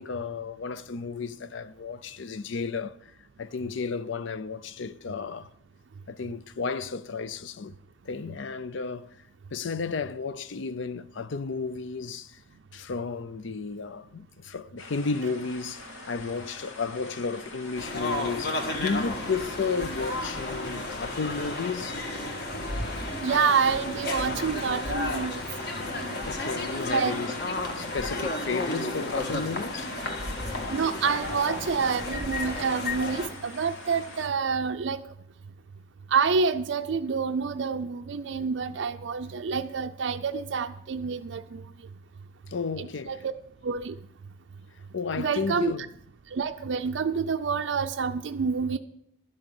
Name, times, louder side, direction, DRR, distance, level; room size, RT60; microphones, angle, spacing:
voice 1, 0.0-3.1 3.4-5.5 6.1-7.8 8.0-9.2 9.5-12.4 12.7-22.0 26.3-27.4 27.7-29.9 42.5-43.2 44.9-45.8, left 4 dB, 70° left, 0.5 m, -33 dB
sound 1, 14.8-34.3, left 2 dB, 90° left, 2.5 m, -44 dB
sound 2, 17.8-33.3, left 2 dB, 55° left, 1.6 m, -33 dB
voice 2, 23.2-25.4 26.9-27.1 30.7-35.0 36.1-41.6 42.8-43.2 43.6-44.0 45.1-45.7 46.3-48.8, right 5 dB, 70° right, 0.4 m, -27 dB
12.0 x 6.4 x 8.8 m
head